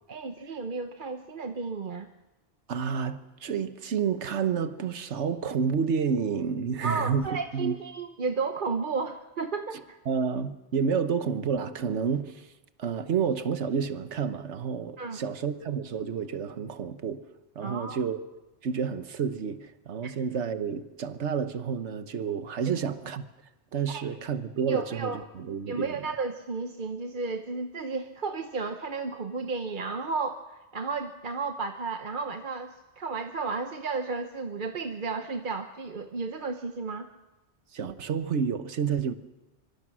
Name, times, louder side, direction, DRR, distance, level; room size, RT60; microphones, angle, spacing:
voice 1, 0.1-2.1 6.8-10.0 15.0-15.3 17.6-18.0 20.0-20.1 22.7-22.8 23.9-24.0 24.7-25.2 25.7-37.1, right 4 dB, 45° right, 1.0 m, -33 dB
voice 2, 2.7-7.7 10.1-12.5 12.8-17.2 17.5-18.2 18.6-23.2 23.7-26.0 37.7-39.1, right 6 dB, 75° right, 1.4 m, -30 dB
25.5 x 23.5 x 6.2 m
omnidirectional pair, 1.2 m